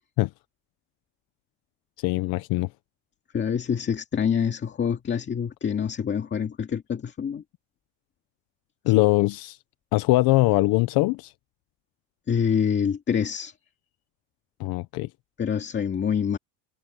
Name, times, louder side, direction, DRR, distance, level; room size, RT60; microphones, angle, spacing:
voice 1, 2.0-2.7 8.8-9.6 9.9-11.3 14.6-15.1, left 20 dB, 65° left, 0.7 m, -22 dB
voice 2, 3.3-7.4 12.3-13.5 15.4-16.4, left 7 dB, 25° left, 2.4 m, -26 dB
cardioid pair, 165°, 40 cm